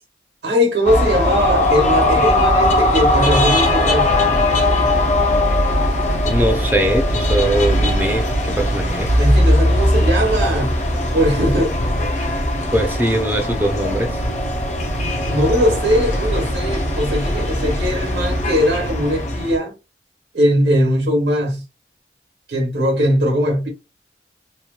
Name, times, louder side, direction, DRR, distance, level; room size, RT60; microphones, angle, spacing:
voice 1, 0.4-4.1 9.2-10.7 11.1-11.7 15.2-19.7 20.3-21.6 22.5-23.7, equal, 70° right, 1.1 m, -19 dB
sound 1, 0.8-19.6, left 1 dB, 40° left, 0.5 m, -19 dB
voice 2, 6.3-9.1 12.7-14.1, right 1 dB, 10° right, 0.5 m, -21 dB
2.9 x 2.2 x 2.2 m
head